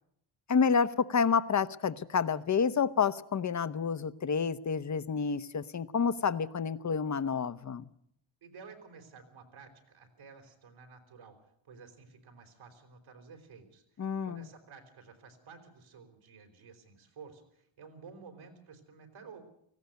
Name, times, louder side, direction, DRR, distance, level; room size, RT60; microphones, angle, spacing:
voice 1, 0.5-7.9 14.0-14.4, left 6 dB, 35° left, 15 dB, 0.8 m, -29 dB
voice 2, 8.4-19.4, right 5 dB, 75° right, 5 dB, 4.3 m, -53 dB
18.5 x 16.0 x 9.2 m, 0.73 s
cardioid pair, 120°, 48 cm